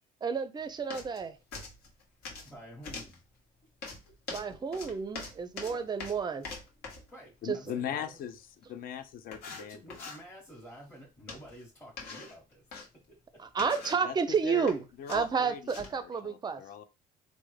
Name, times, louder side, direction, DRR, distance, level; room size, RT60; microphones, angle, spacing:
voice 1, 0.2-1.4 4.3-6.5 7.5-7.6 13.5-14.8 15.1-16.6, right 5 dB, 25° right, 0.4 m, -31 dB
sound 1, 0.9-1.2 1.5-2.5 2.8-3.2 3.8-7.1 8.6-8.7 9.3-10.2 11.3-11.6 12.0-12.9 13.5-14.1 14.5-14.8 15.1-16.0, left 4 dB, 75° left, 1.1 m, -43 dB
voice 2, 2.4-3.2 3.6-3.7 4.0-4.1 5.6-5.9 7.1-8.2 9.5-12.7 13.1-13.4, right 1 dB, 10° left, 0.9 m, -50 dB
voice 3, 7.4-8.4 8.7-9.8 14.0-14.7 15.0-15.6 16.0-16.8, left 9 dB, 60° left, 0.4 m, -39 dB
3.3 x 2.1 x 3.1 m
cardioid pair, 110°, 17 cm